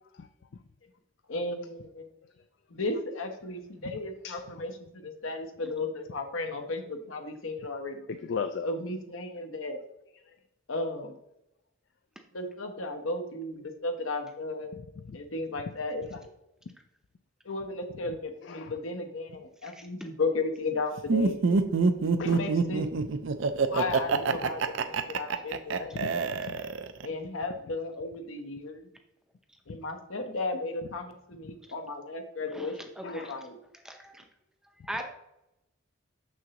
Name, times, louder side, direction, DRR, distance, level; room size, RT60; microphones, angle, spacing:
voice 1, 1.3-2.1 2.7-8.1 8.6-9.8 10.7-11.2 12.3-14.8 15.1-16.3 17.4-21.4 22.2-22.8 23.6-26.0 27.0-28.9 29.7-33.6, left 2 dB, 85° left, 5 dB, 1.0 m, -35 dB
voice 2, 8.1-8.7 15.0-15.2 18.5-18.7 22.2-22.4 25.8-26.6 33.0-33.4, left 6 dB, 60° left, 9 dB, 0.4 m, -37 dB
voice 3, 19.6-20.1 25.9-26.0 32.5-33.3 33.8-34.3 34.8-35.0, right 1 dB, 5° right, 4 dB, 0.5 m, -41 dB
Laughter, 21.1-27.1, right 4 dB, 70° right, 0.5 m, -26 dB
6.8 x 6.3 x 2.9 m, 0.86 s
head